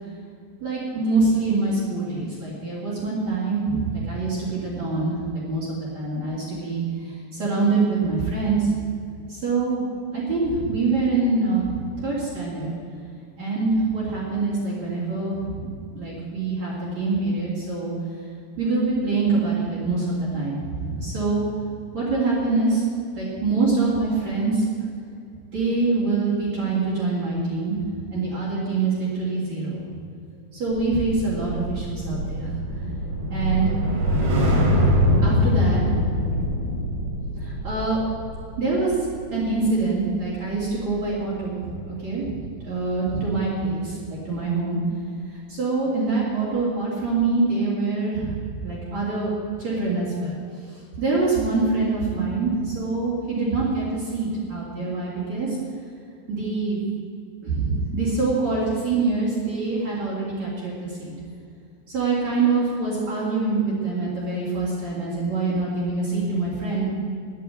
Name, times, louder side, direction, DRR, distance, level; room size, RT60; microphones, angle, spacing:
voice 1, 0.6-8.7 9.3-9.8 10.1-12.7 13.4-17.9 18.6-21.4 21.9-22.9 23.2-24.6 25.5-27.8 28.1-29.8 30.5-32.6 33.3-33.9 34.8-35.8 37.4-38.0 38.6-39.0 39.3-44.8 45.3-49.3 49.6-50.4 50.6-55.6 56.3-56.8 57.4-61.1 61.9-66.9, right 3 dB, 45° right, -6 dB, 3.7 m, -25 dB
sound 1, 30.7-41.1 41.4-41.7, equal, 80° right, 4.8 m, -24 dB
9.9 x 9.4 x 9.0 m, 2.5 s
omnidirectional pair, 4.8 m